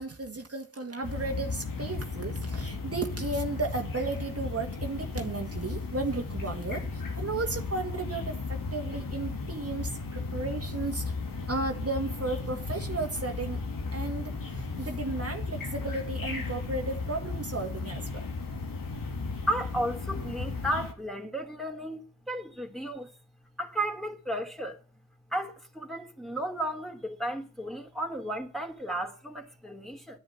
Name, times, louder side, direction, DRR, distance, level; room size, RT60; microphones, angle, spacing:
voice 1, 0.0-11.1 11.5-13.6 13.9-18.2, right 3 dB, 45° right, 1.8 m, -34 dB
sound 1, 1.0-20.9, left 3 dB, 90° left, 2.2 m, -35 dB
voice 2, 19.5-23.1 23.6-24.8 25.3-30.2, right 1 dB, ahead, 2.9 m, -34 dB
10.0 x 9.3 x 10.0 m
cardioid pair, 45°, 32 cm